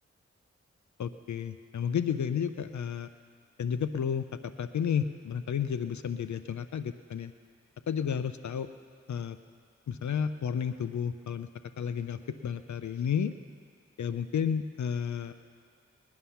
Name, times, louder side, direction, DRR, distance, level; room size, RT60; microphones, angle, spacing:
voice 1, 1.0-3.1 3.6-7.3 7.9-8.7 9.1-9.4 9.9-11.5 11.8-13.3 14.0-15.3, left 7 dB, 75° left, 11 dB, 0.6 m, -32 dB
21.0 x 9.6 x 5.7 m, 2.1 s
cardioid pair, 40°, 29 cm